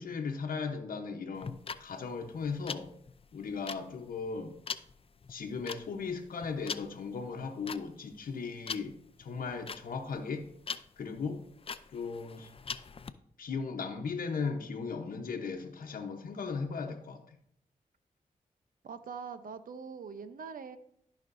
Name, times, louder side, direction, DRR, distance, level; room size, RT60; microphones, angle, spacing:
voice 1, 0.0-2.9 3.3-4.5 5.3-8.9 9.2-10.5 11.0-11.4 11.9-12.5 13.4-17.2, left 5 dB, 75° left, 2 dB, 0.9 m, -37 dB
sound 1, 1.3-13.1, left 5 dB, 40° left, 0.5 m, -42 dB
voice 2, 18.8-20.8, right 6 dB, 70° right, 11 dB, 0.7 m, -43 dB
13.5 x 5.1 x 2.6 m, 0.69 s
cardioid pair, 50°, 15 cm